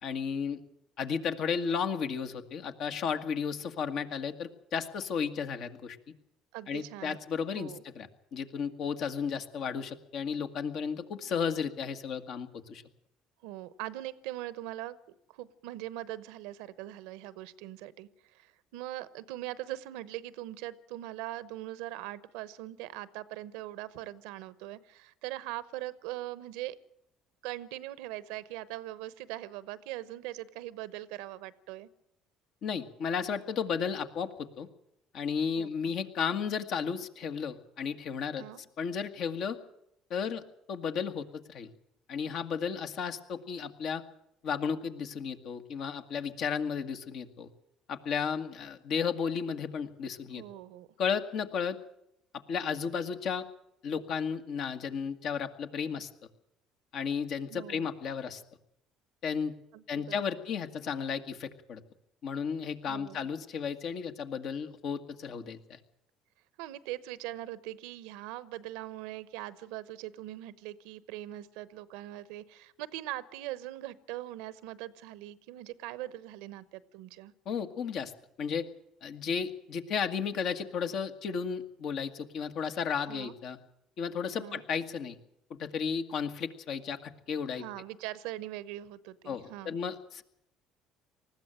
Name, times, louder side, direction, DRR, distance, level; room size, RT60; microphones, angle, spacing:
voice 1, 0.0-0.6 1.0-6.0 6.7-12.8 32.6-34.7 35.1-38.4 38.8-39.6 40.1-40.4 40.7-41.7 42.1-44.0 44.4-47.5 47.9-50.4 51.0-51.8 52.3-53.5 53.8-56.1 56.9-58.4 59.2-59.5 59.9-61.8 62.2-65.8 77.4-78.1 78.4-78.7 79.0-83.6 84.0-85.2 85.6-87.7 89.3-90.2, left 6 dB, 65° left, 7 dB, 1.8 m, -33 dB
voice 2, 6.5-7.2 7.5-7.8 13.4-26.8 27.4-31.9 35.5-35.9 38.4-38.6 50.3-50.9 57.5-57.9 59.7-60.2 62.8-63.3 66.6-77.3 83.1-83.3 84.4-84.6 87.5-89.8, right 15 dB, 85° right, 17 dB, 0.9 m, -41 dB
20.0 x 14.5 x 8.9 m, 0.78 s
supercardioid pair, 85°, 0 cm